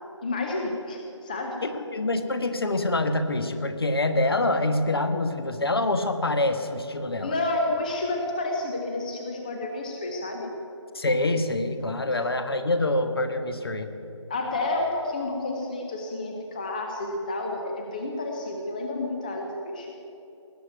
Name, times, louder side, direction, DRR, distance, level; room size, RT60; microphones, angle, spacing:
voice 1, 0.2-1.6 7.2-10.5 14.3-19.9, left 2 dB, 15° left, 2 dB, 0.7 m, -30 dB
voice 2, 1.6-7.3 10.9-13.9, left 2 dB, 50° left, 8 dB, 1.3 m, -26 dB
19.0 x 7.6 x 9.1 m, 2.9 s
figure-of-eight pair, 160°, 16 cm